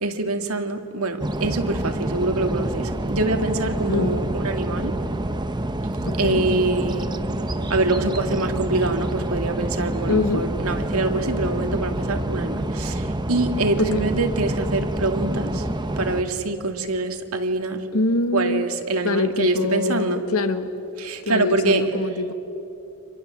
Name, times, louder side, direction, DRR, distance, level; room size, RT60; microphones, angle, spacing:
voice 1, 0.0-5.0 6.2-7.1 7.7-15.6 16.0-17.8 18.3-20.2 21.0-21.8, right 2 dB, 80° right, 5 dB, 2.1 m, -25 dB
sound 1, 1.2-16.2, right 1 dB, 20° right, 1.0 m, -27 dB
voice 2, 3.9-4.3 6.1-6.4 10.1-10.5 13.8-14.0 17.9-18.7 19.0-20.7 21.2-22.3, left 3 dB, 80° left, 9 dB, 1.6 m, -24 dB
30.0 x 26.0 x 7.4 m, 3.0 s
head